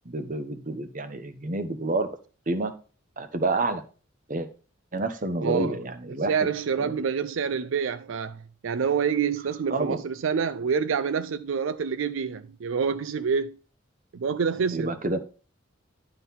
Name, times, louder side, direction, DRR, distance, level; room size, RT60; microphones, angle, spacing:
voice 1, 0.1-2.1 2.5-2.7 3.2-3.8 4.3-4.5 4.9-6.4 6.8-6.9 9.7-10.0 14.7-15.2, right 2 dB, 45° right, 1.0 m, -28 dB
voice 2, 5.4-5.8 6.3-13.6 14.1-14.9, right 6 dB, 80° right, 0.4 m, -27 dB
11.0 x 3.9 x 5.6 m
head